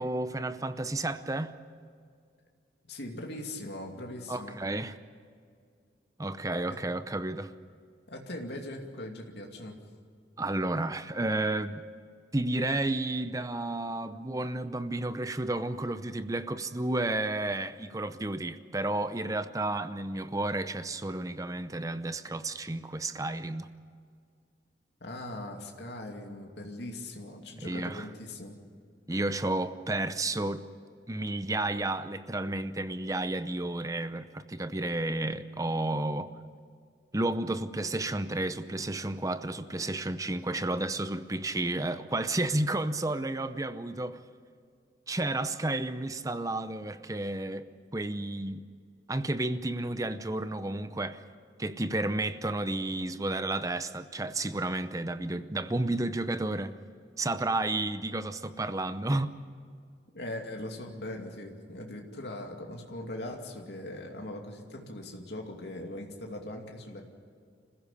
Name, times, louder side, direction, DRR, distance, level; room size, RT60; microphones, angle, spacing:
voice 1, 0.0-1.5 4.3-5.0 6.2-7.5 10.4-11.8 12.3-23.7 27.6-28.1 29.1-30.6 31.1-36.3 37.1-44.2 45.1-47.6 47.9-48.6 49.1-51.2 51.6-56.8 57.2-59.3, right 2 dB, 20° right, 11 dB, 0.7 m, -31 dB
voice 2, 2.8-4.6 6.7-6.8 8.1-9.7 25.0-28.6 60.1-67.0, left 1 dB, 70° left, 1 dB, 2.6 m, -40 dB
26.5 x 15.5 x 8.4 m, 2.2 s
head